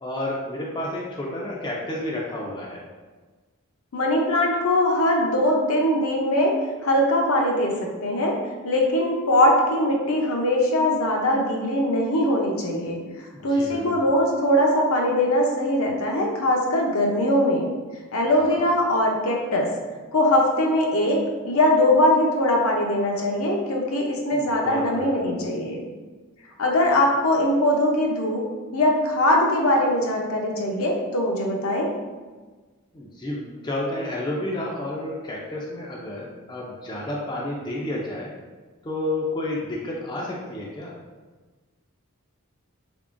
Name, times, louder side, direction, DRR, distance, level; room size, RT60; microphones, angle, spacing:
voice 1, 0.0-2.8 13.3-14.0 18.4-18.7 24.3-25.3 32.9-38.3 38.8-40.9, left 1 dB, 20° left, -3 dB, 0.4 m, -31 dB
voice 2, 3.9-6.5 6.8-7.7 8.0-8.4 8.6-13.0 13.4-17.7 18.1-19.7 20.1-25.8 26.6-28.4 28.7-31.9, left 1 dB, 70° left, 0 dB, 0.6 m, -21 dB
3.5 x 3.3 x 2.5 m, 1.3 s
head